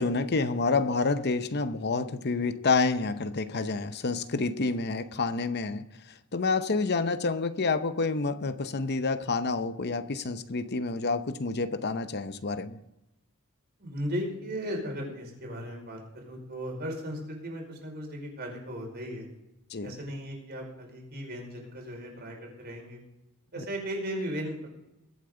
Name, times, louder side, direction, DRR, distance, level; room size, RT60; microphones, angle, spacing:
voice 1, 0.0-5.9 6.3-12.8 19.7-19.9 23.6-23.7, left 3 dB, 50° left, 0.8 m, -28 dB
voice 2, 13.8-19.3 19.8-23.0 23.5-24.7, equal, 50° right, 5.0 m, -36 dB
22.5 x 8.6 x 3.9 m
head